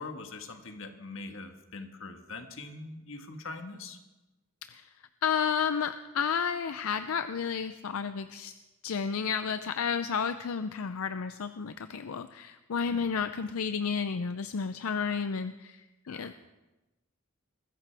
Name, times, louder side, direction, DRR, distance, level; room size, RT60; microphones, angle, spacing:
voice 1, 0.0-4.0 12.9-13.1 16.0-16.3, left 3 dB, 65° left, 6 dB, 1.4 m, -43 dB
voice 2, 5.2-8.5 8.8-16.3, left 6 dB, 85° left, 10 dB, 0.5 m, -31 dB
21.0 x 15.0 x 3.4 m, 1.1 s
head